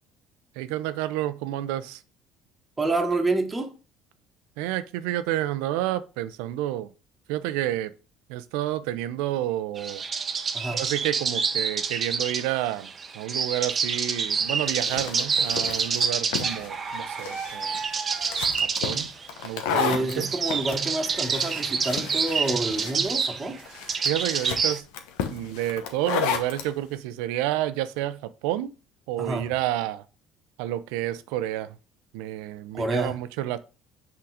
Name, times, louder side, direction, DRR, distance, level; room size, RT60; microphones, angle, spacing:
voice 1, 0.6-2.0 4.6-6.9 7.3-7.9 8.3-10.0 10.7-12.9 13.1-17.8 18.8-19.1 19.4-20.3 24.0-24.8 25.3-28.7 29.1-30.0 30.6-31.8 32.1-33.6, right 13 dB, 85° right, 0.6 m, -29 dB
voice 2, 2.8-3.7 10.5-10.8 19.7-23.6 29.2-29.5 32.7-33.2, right 2 dB, 15° right, 1.4 m, -28 dB
sound 1, 9.8-24.8, right 5 dB, 35° right, 0.8 m, -28 dB
sound 2, 14.4-26.7, left 7 dB, 85° left, 1.0 m, -33 dB
5.9 x 3.8 x 4.8 m
supercardioid pair, 100°, 0 cm